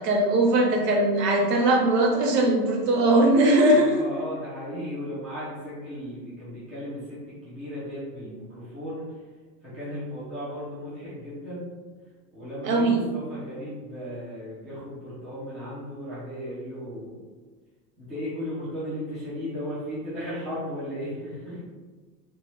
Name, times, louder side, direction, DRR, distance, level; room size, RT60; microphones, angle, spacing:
voice 1, 0.0-4.0 12.6-13.1, right 1 dB, 85° right, 0 dB, 0.9 m, -20 dB
voice 2, 3.7-9.2 9.6-11.7 12.3-17.2 18.0-21.6, equal, ahead, -12 dB, 0.3 m, -36 dB
2.7 x 2.2 x 3.0 m, 1.4 s
supercardioid pair, 150°, 47 cm